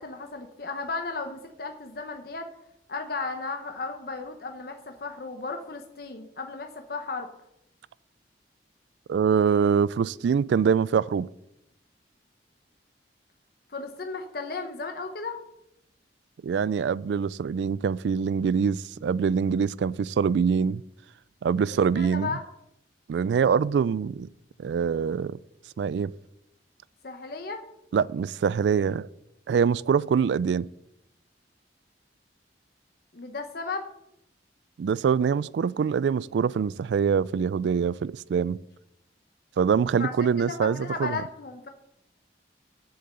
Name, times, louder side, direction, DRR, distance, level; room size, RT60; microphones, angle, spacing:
voice 1, 0.0-2.5 2.9-7.3 13.7-15.4 21.9-22.4 27.0-27.6 33.1-33.9 40.0-40.1 40.5-41.7, left 4 dB, 60° left, 0.9 m, -35 dB
voice 2, 9.1-11.3 16.4-20.8 21.4-22.3 23.1-24.3 24.6-25.4 25.8-26.1 27.9-29.1 29.5-30.7 34.8-38.6 39.6-41.2, right 6 dB, 75° right, 0.3 m, -24 dB
7.7 x 6.8 x 7.7 m
head